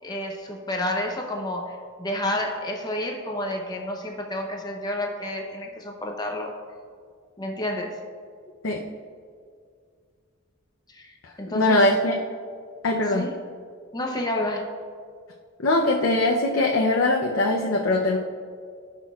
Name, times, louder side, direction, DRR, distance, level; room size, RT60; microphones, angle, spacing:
voice 1, 0.0-6.5 7.4-8.0 10.9-11.8 13.1-13.3 13.9-14.7, left 1 dB, 20° left, 2 dB, 0.7 m, -30 dB
voice 2, 11.5-12.1 12.8-13.3 15.6-18.2, left 2 dB, 80° left, -1 dB, 0.7 m, -21 dB
15.5 x 6.0 x 2.4 m, 2.1 s
head